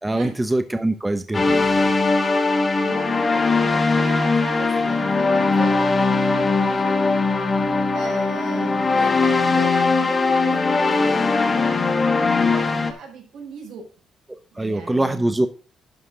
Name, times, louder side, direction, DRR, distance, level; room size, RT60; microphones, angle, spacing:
voice 1, 0.0-1.9 14.6-15.5, right 1 dB, 15° right, 8 dB, 0.9 m, -23 dB
sound 1, 1.3-12.9, left 3 dB, 30° left, 1.5 m, -20 dB
voice 2, 2.5-6.9 7.9-11.9 12.4-13.8 14.5-15.4, right 5 dB, 85° right, 0 dB, 4.9 m, -38 dB
11.5 x 4.9 x 4.8 m, 0.36 s
cardioid pair, 90°, 0 cm